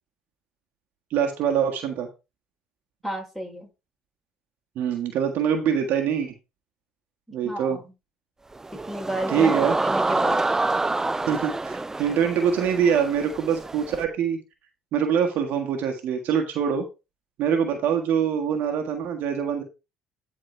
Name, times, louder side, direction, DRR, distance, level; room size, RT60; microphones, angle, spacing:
voice 1, 1.1-2.1 4.7-6.3 7.3-7.8 9.3-9.8 11.3-14.4 14.9-16.8 17.4-19.6, right 7 dB, 65° right, 4 dB, 1.6 m, -24 dB
voice 2, 3.0-3.7 7.3-7.9 8.9-9.5 9.8-10.5, equal, ahead, 1 dB, 4.3 m, -32 dB
sound 1, 8.5-14.0, right 2 dB, 15° right, 0.4 m, -27 dB
11.0 x 4.2 x 4.5 m, 0.27 s
hypercardioid pair, 65°, 3 cm